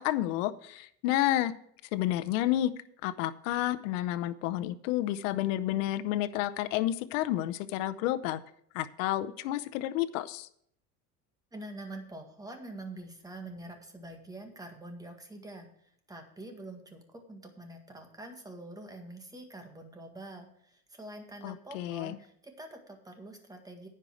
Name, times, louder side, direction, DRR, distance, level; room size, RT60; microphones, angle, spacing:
voice 1, 0.0-1.5 1.9-2.7 3.0-8.4 8.7-10.5 21.4-22.2, left 14 dB, 90° left, 13 dB, 0.7 m, -30 dB
voice 2, 11.5-23.9, right 1 dB, 10° right, 4 dB, 1.8 m, -46 dB
9.9 x 5.6 x 7.7 m, 0.67 s
cardioid pair, 130°, 38 cm